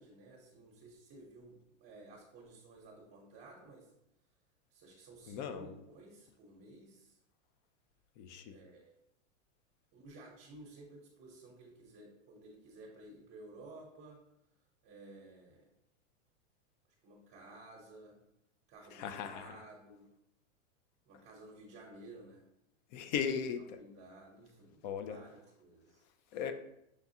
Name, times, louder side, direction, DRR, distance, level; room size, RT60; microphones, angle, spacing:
voice 1, 0.0-3.9 4.7-7.2 8.5-8.9 9.9-14.2 14.8-15.7 17.0-18.2 18.7-20.1 21.1-22.4 23.8-24.8 25.1-26.0, right 2 dB, 30° right, -2 dB, 0.9 m, -54 dB
voice 2, 5.3-5.7 8.2-8.6 18.9-19.6 22.9-23.8 24.8-25.2 26.3-26.5, left 7 dB, 40° left, 9 dB, 0.4 m, -38 dB
6.3 x 2.3 x 2.7 m, 0.83 s
supercardioid pair, 140°, 37 cm